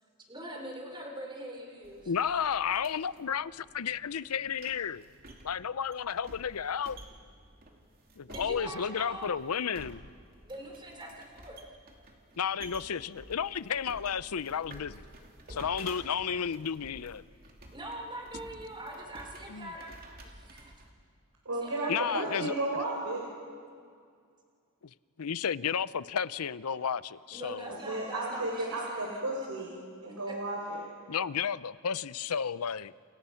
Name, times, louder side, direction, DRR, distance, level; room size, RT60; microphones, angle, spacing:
voice 1, 0.3-2.1 8.3-9.3 10.4-11.7 17.4-20.8 21.6-22.5 27.3-29.2 30.3-30.4, right 1 dB, 20° right, 1 dB, 3.8 m, -43 dB
sound 1, 1.8-20.9, right 1 dB, 45° right, 3.0 m, -52 dB
voice 2, 2.1-5.0 5.4-7.0 8.2-10.1 12.4-15.1 15.5-17.2 19.5-19.7 21.9-22.5 25.2-27.8 31.1-32.9, left 7 dB, 85° left, 17 dB, 0.6 m, -32 dB
voice 3, 21.5-23.2 27.8-29.7 30.0-30.9, right 2 dB, 75° right, -1 dB, 4.0 m, -33 dB
29.5 x 29.0 x 5.8 m, 2.2 s
head